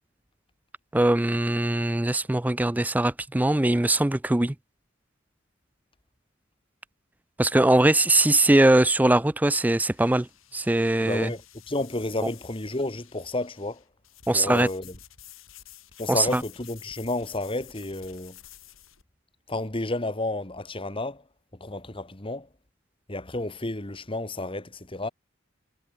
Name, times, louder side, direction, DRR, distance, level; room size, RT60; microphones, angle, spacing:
voice 1, 0.9-4.5 7.4-10.3 10.5-11.3 14.3-14.7 16.1-16.4, right 1 dB, 10° right, 0.4 m, -21 dB
sound 1, 9.0-19.0, left 11 dB, 85° left, 5.1 m, -51 dB
voice 2, 11.0-13.8 14.3-15.0 16.0-18.4 19.5-21.2 21.5-22.5 23.1-25.1, left 2 dB, 25° left, 1.9 m, -31 dB
head